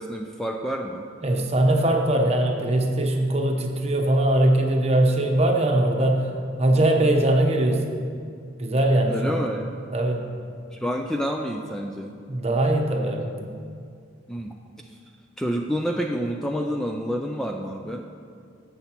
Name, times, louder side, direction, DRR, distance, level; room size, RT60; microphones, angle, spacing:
voice 1, 0.0-1.1 9.0-9.7 10.7-12.2 14.3-14.6 15.4-18.1, equal, 5° left, 1 dB, 0.3 m, -28 dB
voice 2, 1.2-6.3 6.6-7.8 8.6-9.4 9.9-10.3 12.3-13.3, right 1 dB, 35° right, 2 dB, 0.9 m, -21 dB
16.5 x 7.0 x 3.0 m, 2.3 s
head